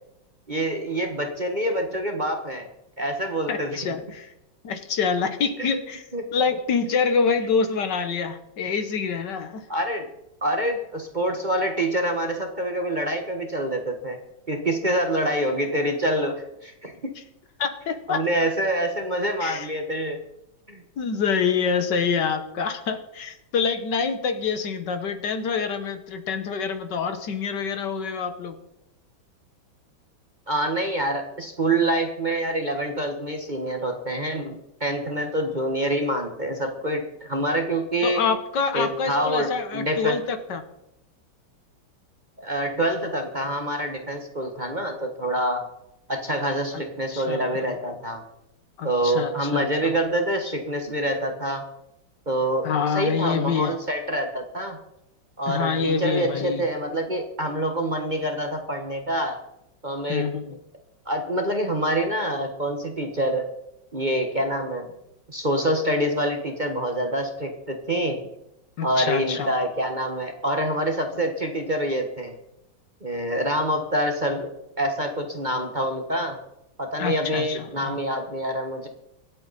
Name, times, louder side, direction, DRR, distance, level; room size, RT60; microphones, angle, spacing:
voice 1, 0.5-2.7 3.0-3.8 5.6-5.8 6.1-6.2 9.7-10.1 10.4-14.2 14.5-17.1 18.1-20.2 20.7-20.8 30.5-38.2 38.7-40.2 42.4-45.6 46.1-48.2 48.8-51.7 52.3-54.8 55.4-59.4 59.8-60.3 61.0-63.5 63.9-64.9 65.3-68.2 68.8-72.3 73.0-74.5 74.8-76.4 76.8-78.9, right 1 dB, 25° right, 3 dB, 1.2 m, -26 dB
voice 2, 3.5-4.3 4.6-6.0 6.3-9.7 17.6-18.2 19.4-19.7 21.0-28.6 38.0-40.6 46.7-46.8 47.1-47.7 48.8-50.0 52.6-53.7 55.5-56.6 60.1-60.6 68.8-69.5 77.0-78.0, left 5 dB, 65° left, 9 dB, 1.6 m, -26 dB
24.5 x 8.3 x 4.1 m, 0.84 s
omnidirectional pair, 2.2 m